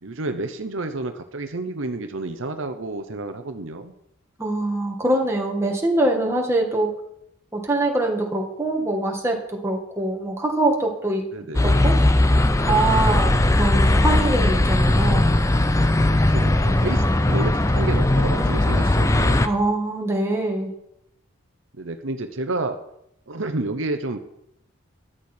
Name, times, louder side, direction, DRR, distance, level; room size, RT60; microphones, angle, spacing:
voice 1, 0.0-3.9 11.3-11.7 16.3-19.5 21.8-22.8 23.3-24.2, right 2 dB, 65° right, 8 dB, 0.9 m, -30 dB
voice 2, 4.4-6.9 7.5-11.2 11.6-12.0 12.6-15.3 19.4-20.7, right 2 dB, 10° right, 1 dB, 1.8 m, -23 dB
sound 1, 11.5-19.5, left 1 dB, 15° left, 0.5 m, -18 dB
13.5 x 10.0 x 4.5 m, 0.77 s
head